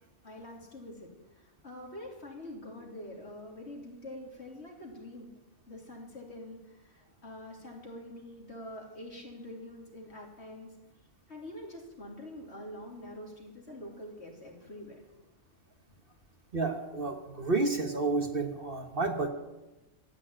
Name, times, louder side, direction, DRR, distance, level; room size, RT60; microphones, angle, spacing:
voice 1, 0.2-5.3 5.7-10.7 11.3-15.0, left 1 dB, 50° left, 0 dB, 3.3 m, -45 dB
voice 2, 16.5-19.3, right 3 dB, 45° right, 5 dB, 1.3 m, -30 dB
13.5 x 9.5 x 8.7 m, 1.1 s
omnidirectional pair, 1.4 m